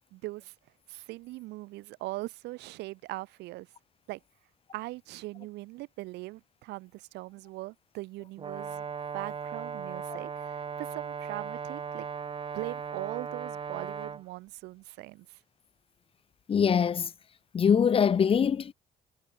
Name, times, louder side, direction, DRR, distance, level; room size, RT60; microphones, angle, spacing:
voice 1, 0.1-0.5 0.9-3.7 4.1-4.2 4.7-8.8 9.1-12.1 12.5-15.4, right 20 dB, 90° right, 4.1 m, -40 dB
Brass instrument, 8.4-14.2, right 6 dB, 30° right, 1.2 m, -37 dB
voice 2, 16.5-17.1 17.5-18.7, left 7 dB, 35° left, 0.7 m, -23 dB
cardioid pair, 110°, 17 cm